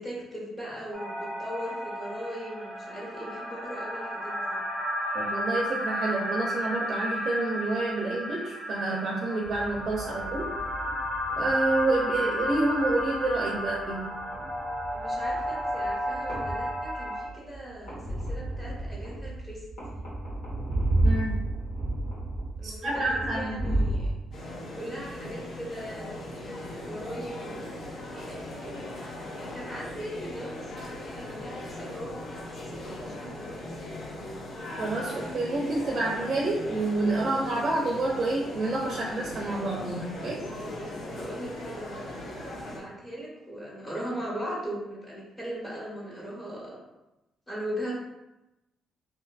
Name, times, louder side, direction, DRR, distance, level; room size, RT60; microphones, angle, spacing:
voice 1, 0.0-4.6 14.9-19.6 19.9-20.0 22.6-24.1 24.7-33.6 40.4-46.8 47.5-48.0, equal, 25° left, -6 dB, 1.2 m, -39 dB
sound 1, 0.9-17.2, equal, 5° right, 1.1 m, -33 dB
voice 2, 5.1-10.5 11.4-14.1 21.0-21.4 22.6-23.8 34.8-40.4, right 2 dB, 45° right, -2 dB, 0.5 m, -28 dB
sound 2, 9.4-24.1, right 1 dB, 80° left, 1.1 m, -33 dB
sound 3, 24.3-42.8, left 1 dB, 65° left, 0.6 m, -39 dB
2.6 x 2.4 x 2.3 m, 0.97 s
cardioid pair, 90°, 0 cm